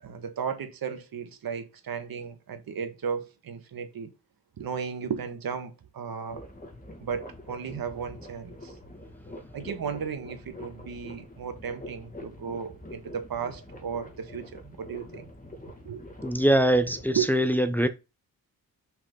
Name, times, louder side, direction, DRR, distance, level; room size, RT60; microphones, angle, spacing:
voice 1, 0.0-4.1 4.6-6.5 7.0-8.7 9.5-15.3 15.8-16.0 17.2-17.5, right 7 dB, 75° right, 1.6 m, -35 dB
sound 1, 6.3-17.2, left 1 dB, 25° left, 2.2 m, -45 dB
voice 2, 16.2-17.9, right 1 dB, 5° left, 0.8 m, -23 dB
6.3 x 6.0 x 3.9 m
wide cardioid pair, 110°, 36 cm